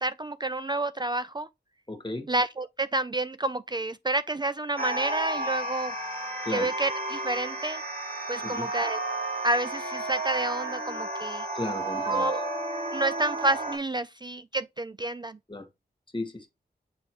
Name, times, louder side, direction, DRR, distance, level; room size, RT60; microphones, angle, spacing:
voice 1, 0.0-1.5 2.3-5.9 6.5-7.8 8.3-9.0 9.4-11.5 12.1-12.4 12.9-15.4, right 2 dB, 25° right, 0.4 m, -29 dB
voice 2, 1.9-2.3 6.4-6.7 8.4-8.7 11.5-12.5 15.5-15.7 16.1-16.5, left 2 dB, 30° left, 1.7 m, -35 dB
sound 1, 4.8-13.8, right 2 dB, 60° right, 2.7 m, -32 dB
7.8 x 3.0 x 4.6 m
wide cardioid pair, 60°, 17 cm